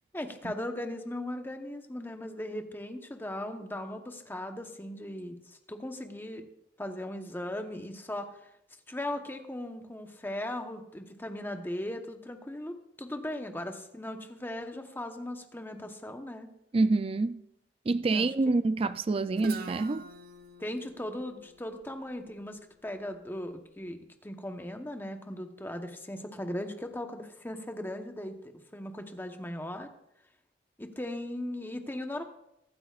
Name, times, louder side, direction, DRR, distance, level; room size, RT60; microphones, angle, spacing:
voice 1, 0.1-6.4 6.8-8.5 8.9-16.5 18.1-18.3 20.6-29.9 30.8-32.2, left 1 dB, 10° left, 1.0 m, -38 dB
voice 2, 16.7-17.4 17.9-20.1, right 3 dB, 35° right, 0.4 m, -27 dB
Guitar, 19.4-23.2, right 3 dB, 55° right, 0.7 m, -45 dB
23.0 x 8.9 x 2.5 m
head